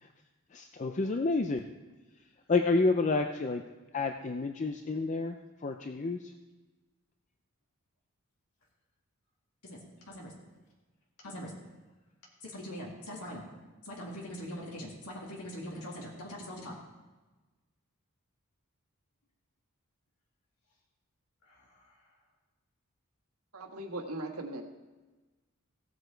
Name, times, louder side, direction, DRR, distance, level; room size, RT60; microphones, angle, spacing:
voice 1, 0.5-1.7 2.5-3.6 3.9-6.3, left 3 dB, 35° left, 5 dB, 0.4 m, -29 dB
voice 2, 9.6-10.3 11.2-11.5 12.4-13.4 13.8-16.7 21.4-22.2, equal, 85° left, -3 dB, 2.3 m, -42 dB
voice 3, 23.5-24.6, right 1 dB, 90° right, 1 dB, 1.5 m, -38 dB
16.5 x 8.0 x 4.5 m, 1.2 s
head